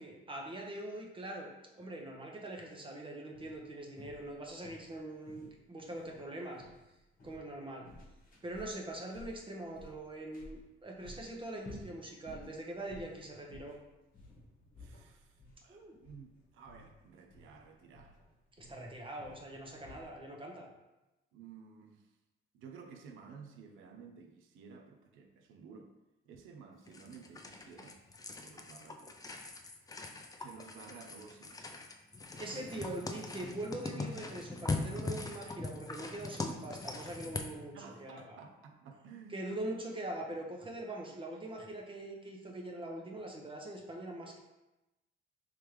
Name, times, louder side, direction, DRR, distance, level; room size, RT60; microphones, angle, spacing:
voice 1, 0.0-6.6 7.2-7.9 8.4-13.8 15.7-16.0 18.6-20.7 32.4-37.7 38.0-38.2 39.3-44.4, right 1 dB, 25° right, 0 dB, 0.8 m, -43 dB
sound 1, 3.3-20.2, left 1 dB, 45° left, 1.0 m, -55 dB
voice 2, 14.8-18.2 21.3-22.2 22.5-25.9 26.3-28.0 28.4-29.2 30.4-31.9 32.4-32.9 37.7-39.5, right 5 dB, 85° right, 5 dB, 0.5 m, -53 dB
sound 2, 26.9-37.6, left 3 dB, 20° left, 0.4 m, -41 dB
3.5 x 3.3 x 3.1 m, 0.99 s
cardioid pair, 90°, 20 cm